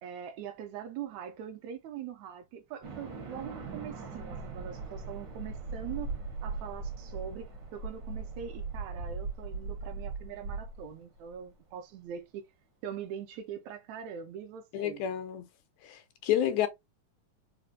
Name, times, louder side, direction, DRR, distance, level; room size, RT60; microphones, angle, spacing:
voice 1, 0.0-6.1 6.4-12.5 12.8-15.0, right 8 dB, 80° right, 1.8 m, -42 dB
sound 1, 2.8-11.3, right 4 dB, 60° right, 1.2 m, -39 dB
voice 2, 14.7-15.5 15.8-16.7, left 11 dB, 80° left, 1.8 m, -30 dB
4.9 x 2.2 x 2.5 m
omnidirectional pair, 3.4 m